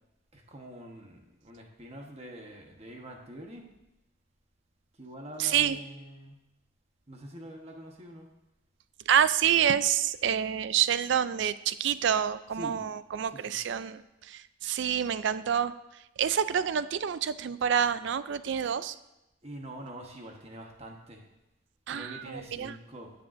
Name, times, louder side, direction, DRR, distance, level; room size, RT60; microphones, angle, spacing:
voice 1, 0.3-3.7 5.0-6.4 7.1-8.3 12.5-12.8 13.3-13.6 19.4-21.2 21.9-23.1, right 1 dB, 30° right, 1 dB, 1.1 m, -45 dB
voice 2, 5.4-5.8 9.1-14.0 14.3-15.7 16.2-18.9 21.9-22.7, right 9 dB, 55° right, 14 dB, 0.3 m, -27 dB
16.0 x 6.7 x 2.5 m, 0.94 s
head